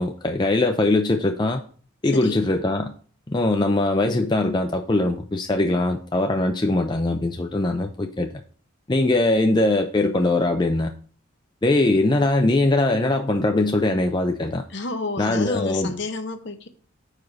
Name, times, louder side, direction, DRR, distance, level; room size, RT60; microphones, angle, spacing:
voice 1, 0.0-1.6 2.0-2.9 3.3-8.3 8.9-10.9 11.6-14.6 15.2-15.9, left 2 dB, 20° left, 0.4 m, -21 dB
voice 2, 2.0-2.4 14.7-16.7, left 3 dB, 55° left, 0.8 m, -30 dB
5.3 x 4.9 x 6.0 m
head